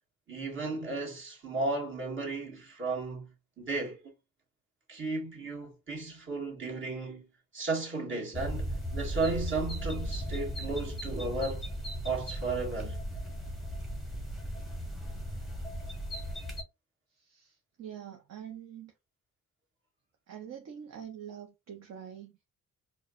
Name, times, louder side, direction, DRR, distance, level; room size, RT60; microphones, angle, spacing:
voice 1, 0.3-3.3 3.6-4.0 4.9-7.3 7.5-11.7 12.0-13.0, right 3 dB, 40° right, 1.7 m, -34 dB
sound 1, 8.3-16.6, equal, ahead, 1.0 m, -36 dB
voice 2, 17.1-18.9 20.3-22.3, right 9 dB, 55° right, 0.8 m, -45 dB
4.6 x 2.3 x 2.4 m
wide cardioid pair, 150°, 31 cm